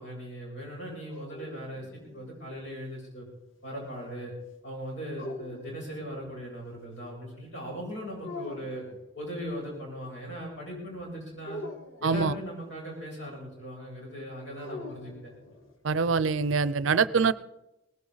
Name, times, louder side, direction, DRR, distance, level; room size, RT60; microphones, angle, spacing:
voice 1, 0.0-3.3 3.6-4.3 4.6-8.8 9.1-11.6 12.0-15.3, equal, 65° left, -3 dB, 7.8 m, -39 dB
sound 1, 0.8-2.7 5.2-6.4 8.2-9.0 11.4-12.5 14.6-15.8, left 1 dB, 90° left, 1.8 m, -43 dB
voice 2, 12.0-12.3 15.8-17.3, right 5 dB, 80° right, 17 dB, 0.5 m, -24 dB
19.0 x 16.5 x 4.0 m, 0.93 s
head